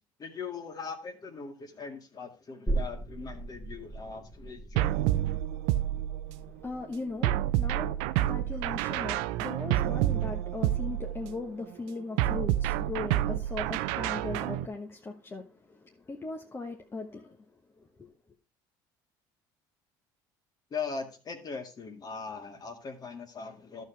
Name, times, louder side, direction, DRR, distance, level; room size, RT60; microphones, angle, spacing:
voice 1, 0.2-4.9 20.7-23.8, left 5 dB, 40° left, 2.0 m, -40 dB
sound 1, 2.7-9.9 10.3-10.4, right 2 dB, 5° left, 1.9 m, -39 dB
sound 2, 4.8-6.5 7.2-11.4 12.2-14.7, right 13 dB, 80° right, 0.5 m, -29 dB
voice 2, 6.4-17.4 17.8-18.1, left 3 dB, 25° left, 1.2 m, -39 dB
12.0 x 6.7 x 3.4 m
supercardioid pair, 85°, 10 cm